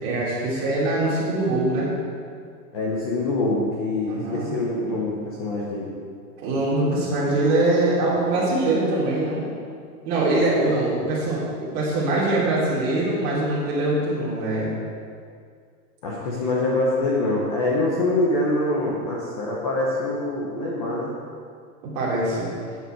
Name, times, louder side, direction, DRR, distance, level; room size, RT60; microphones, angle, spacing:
voice 1, 0.0-1.9 4.1-4.5 6.4-9.5 10.0-14.7 21.8-22.5, right 2 dB, 25° right, -8 dB, 3.4 m, -23 dB
voice 2, 2.7-5.9 16.0-21.1, left 2 dB, 25° left, -4 dB, 1.0 m, -24 dB
14.0 x 9.3 x 4.6 m, 2.2 s
hypercardioid pair, 180°, 49 cm